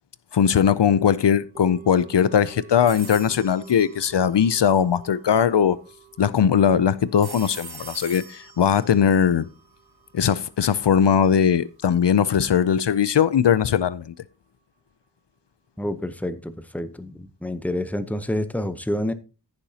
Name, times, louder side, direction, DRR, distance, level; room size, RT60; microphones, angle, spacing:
voice 1, 0.3-5.8 6.2-9.5 10.1-14.1, left 8 dB, 80° left, 0.5 m, -20 dB
sound 1, 1.6-11.8 12.1-12.2, right 9 dB, 20° right, 1.7 m, -49 dB
sound 2, 2.9-4.9 7.2-10.3, right 3 dB, 60° right, 1.9 m, -42 dB
voice 2, 15.8-19.1, left 1 dB, 5° left, 0.8 m, -28 dB
14.5 x 7.0 x 2.8 m
wide cardioid pair, 50°, 42 cm